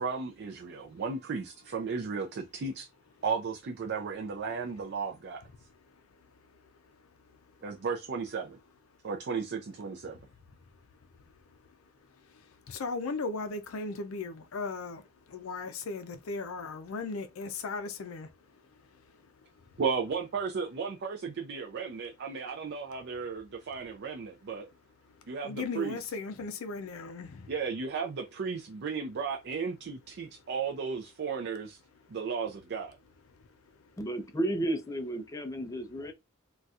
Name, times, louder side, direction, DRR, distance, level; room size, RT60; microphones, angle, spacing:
voice 1, 0.0-2.9 3.2-5.4 7.6-8.6 9.0-10.2 19.8-24.7 25.3-26.0 27.5-31.8 32.1-33.0, right 5 dB, 55° right, 0.4 m, -34 dB
voice 2, 12.3-18.3 25.4-27.5, left 3 dB, 75° left, 0.4 m, -37 dB
voice 3, 34.0-36.1, right 1 dB, 15° left, 0.4 m, -33 dB
4.0 x 2.3 x 2.4 m
head